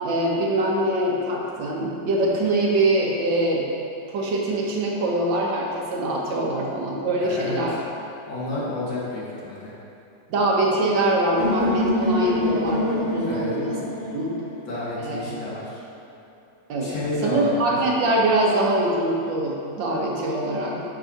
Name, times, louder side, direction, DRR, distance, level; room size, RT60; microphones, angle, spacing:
voice 1, 0.0-3.7 4.1-7.7 10.3-13.8 14.1-14.4 15.0-15.2 16.7-17.0 17.2-20.8, right 1 dB, 80° right, -3 dB, 1.8 m, -23 dB
voice 2, 7.2-7.6 8.3-9.8 13.3-13.5 14.7-15.8 16.8-17.8, left 2 dB, 65° left, -7 dB, 2.3 m, -30 dB
sound 1, 11.4-15.3, equal, 30° left, 1.8 m, -26 dB
8.9 x 6.3 x 2.8 m, 2.7 s
omnidirectional pair, 2.0 m